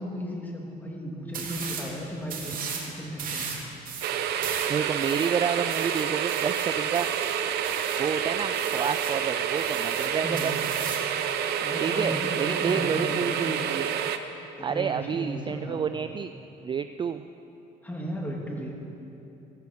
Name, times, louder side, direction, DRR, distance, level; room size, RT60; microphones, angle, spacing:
voice 1, 0.0-3.6 10.2-10.6 11.6-13.7 14.6-15.9 17.8-18.7, equal, 10° left, -2 dB, 2.8 m, -35 dB
sound 1, 1.3-1.9 2.3-2.9 3.2-8.1 8.5-9.2 9.6-11.1, right 6 dB, 55° right, 2.6 m, -37 dB
sound 2, 4.0-14.2, right 9 dB, 75° right, 0.9 m, -28 dB
voice 2, 4.7-7.1 8.0-10.5 11.8-13.9 14.6-16.3 16.6-17.2, right 7 dB, 30° right, 10 dB, 0.4 m, -29 dB
15.5 x 15.5 x 4.7 m, 2.9 s
cardioid pair, 110°, 17 cm